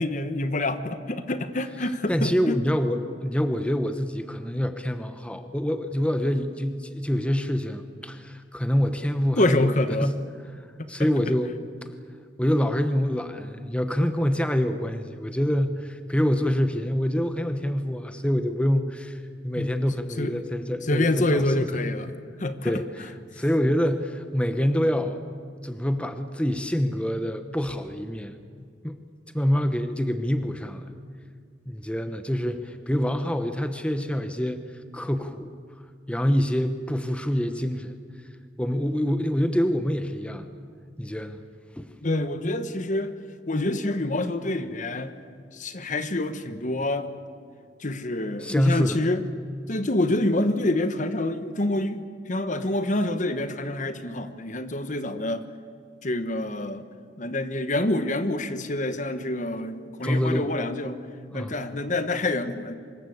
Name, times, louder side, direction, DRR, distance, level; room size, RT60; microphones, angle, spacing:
voice 1, 0.0-2.5 9.4-10.1 10.8-11.1 19.5-19.7 20.2-20.3 20.8-22.8 42.0-43.1 43.5-45.1 45.5-47.1 47.8-49.2 49.7-55.4 56.0-56.8 57.2-61.0 61.3-62.8, left 1 dB, 45° left, 10 dB, 1.3 m, -27 dB
voice 2, 2.1-9.7 10.0-10.2 10.9-11.6 12.4-21.7 22.6-25.2 25.6-28.4 28.8-29.0 29.3-30.9 31.7-34.6 34.9-35.5 36.1-37.9 38.6-40.5 41.0-41.4 41.8-41.9 48.4-49.0 60.0-60.5 61.3-61.5, equal, 5° left, 8 dB, 1.0 m, -26 dB
25.0 x 21.0 x 8.1 m, 2.2 s
head